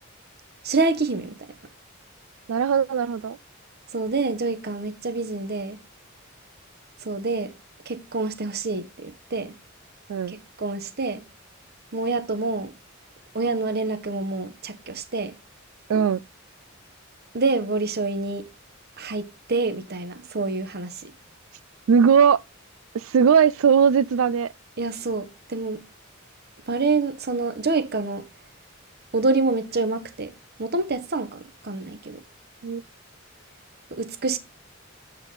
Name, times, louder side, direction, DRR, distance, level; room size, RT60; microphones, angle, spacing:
voice 1, 0.6-1.4 3.9-5.8 7.0-7.5 7.9-9.5 10.3-11.2 11.9-12.7 13.3-15.3 17.3-18.5 19.0-21.1 24.8-25.8 26.7-28.3 29.1-30.3 30.6-32.2 33.9-34.4, right 3 dB, 50° right, 1.0 m, -27 dB
voice 2, 2.5-3.4 10.1-10.4 15.9-16.2 21.9-22.4 22.9-24.5 32.6-32.8, right 7 dB, 75° right, 0.4 m, -19 dB
7.8 x 4.5 x 3.8 m
head